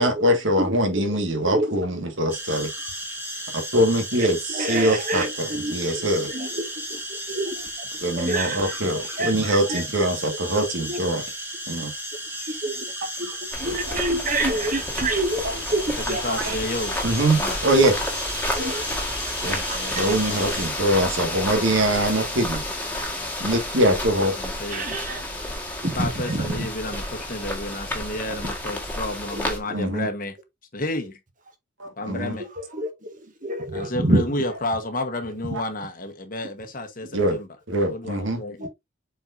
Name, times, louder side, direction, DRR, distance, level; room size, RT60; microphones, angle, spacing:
voice 1, 0.0-2.7 3.5-6.3 8.0-11.2 11.7-11.9 13.6-13.8 15.4-15.8 16.3-16.6 17.0-17.9 19.4-19.6 20.0-22.6 23.4-24.3 29.7-30.1 31.8-32.3 37.1-37.4 37.7-38.4, right 1 dB, 70° right, 1.9 m, -23 dB
voice 2, 0.6-1.8 4.2-9.8 10.8-11.0 12.5-12.9 13.2-13.3 13.6-16.3 18.5-18.8 19.7-20.1 24.7-25.2 25.8-26.7 28.4-28.5 29.3-29.5 32.0-32.2 32.6-34.6 38.6-38.7, right 1 dB, 40° right, 1.7 m, -28 dB
sound 1, 2.3-20.7, equal, 10° right, 1.7 m, -34 dB
sound 2, 13.5-29.6, left 1 dB, 10° left, 1.7 m, -30 dB
voice 3, 15.9-17.0 17.3-17.6 19.4-20.6 24.4-24.9 25.8-30.4 30.7-31.2 32.0-32.5 33.7-37.5 37.9-38.7, left 2 dB, 45° left, 1.3 m, -31 dB
7.6 x 4.6 x 2.7 m
head